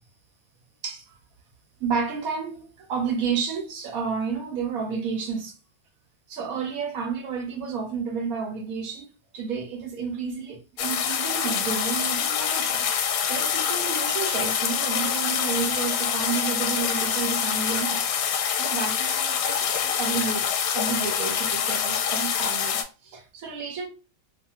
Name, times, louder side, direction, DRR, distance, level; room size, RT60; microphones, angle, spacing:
voice 1, 0.8-1.1 1.8-5.6 6.3-18.1 18.6-20.5 20.7-23.9, right 5 dB, 65° right, 0.9 m, -31 dB
sound 1, 10.8-22.8, left 8 dB, 90° left, 1.2 m, -26 dB
2.5 x 2.4 x 2.7 m
omnidirectional pair, 1.8 m